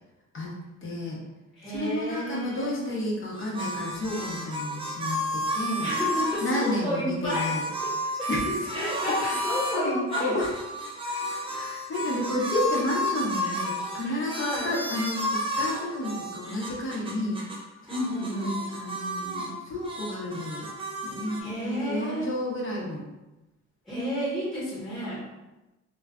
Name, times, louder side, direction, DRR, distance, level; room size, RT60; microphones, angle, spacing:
voice 1, 0.8-1.2 1.7-5.9 6.4-7.7 8.3-8.9 9.2-9.4 9.7-10.5 11.0-17.4 18.2-20.7 21.0-23.0, left 1 dB, 45° left, -3 dB, 0.8 m, -31 dB
voice 2, 1.5-2.8 5.8-7.5 7.8-8.3 8.7-10.4 13.4-13.6 14.0-14.8 17.9-18.6 21.4-22.3 23.9-25.3, equal, ahead, -8 dB, 1.1 m, -31 dB
sound 1, 3.3-6.7 7.3-9.8 10.1-17.6 17.9-19.5 19.8-21.4, equal, 20° right, 0.4 m, -32 dB
2.4 x 2.2 x 2.4 m, 1.0 s
cardioid pair, 90°, 30 cm